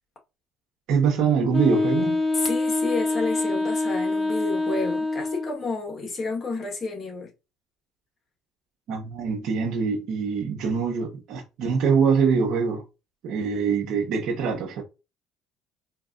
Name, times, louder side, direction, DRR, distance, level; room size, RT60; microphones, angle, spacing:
voice 1, 0.9-2.2 8.9-12.8 13.2-14.8, right 6 dB, 65° right, 1.0 m, -24 dB
Wind instrument woodwind instrument, 1.5-5.6, left 2 dB, 10° left, 1.9 m, -25 dB
voice 2, 2.3-7.3, left 3 dB, 40° left, 1.5 m, -30 dB
4.3 x 2.6 x 2.5 m
supercardioid pair, 95°, 0 cm